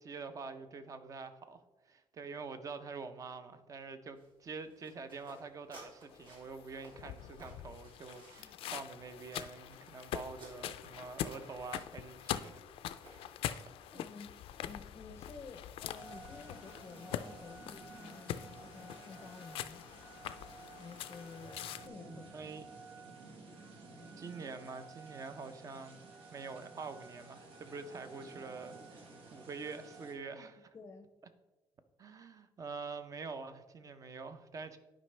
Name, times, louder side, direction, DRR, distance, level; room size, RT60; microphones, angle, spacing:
voice 1, 0.0-1.6 1.9-12.6 13.9-14.0 22.1-22.8 23.2-23.3 24.2-30.6 32.0-34.8, right 4 dB, 35° right, 0.6 m, -46 dB
sound 1, 4.1-13.8, right 1 dB, 60° right, 2.5 m, -59 dB
sound 2, 6.1-21.9, left 11 dB, 85° left, 0.4 m, -44 dB
voice 2, 13.9-14.3 14.6-19.9 20.7-22.2 30.3-30.5 30.7-31.1, left 4 dB, 30° left, 0.5 m, -52 dB
sound 3, 15.9-30.1, right 3 dB, 85° right, 1.4 m, -53 dB
11.0 x 5.0 x 3.2 m
cardioid pair, 145°, 9 cm